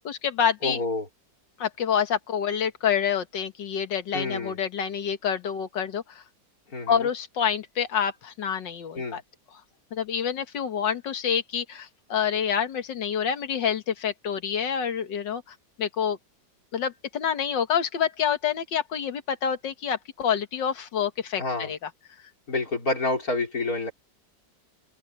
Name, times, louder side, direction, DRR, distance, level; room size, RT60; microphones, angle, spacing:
voice 1, 0.0-0.8 1.6-6.2 6.9-9.2 9.9-15.4 15.8-16.2 16.7-21.8, left 8 dB, 75° left, 2.0 m, -27 dB
voice 2, 0.6-1.1 4.1-4.6 6.7-7.1 8.9-9.2 21.4-21.7 22.5-23.9, left 3 dB, 50° left, 5.1 m, -28 dB
open air
omnidirectional pair, 2.0 m